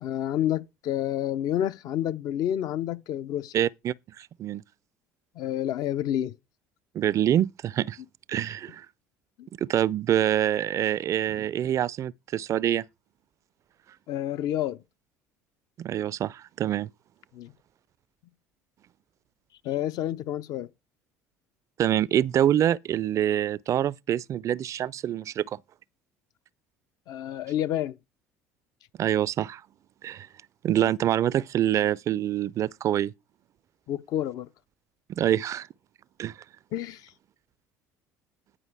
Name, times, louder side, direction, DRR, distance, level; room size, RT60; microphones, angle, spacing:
voice 1, 0.0-3.5 5.4-6.3 9.4-9.5 14.1-14.8 17.3-17.5 19.6-20.7 27.1-28.0 30.8-30.9 33.9-34.5 36.7-37.0, left 11 dB, 55° left, 0.6 m, -29 dB
voice 2, 3.5-4.6 6.9-8.0 8.3-8.9 9.6-12.8 15.8-16.9 21.8-25.6 29.0-29.6 30.0-30.3 30.6-33.1 35.1-35.7 36.2-36.4, right 11 dB, 45° right, 0.4 m, -26 dB
10.0 x 5.0 x 4.7 m
hypercardioid pair, 65°, 8 cm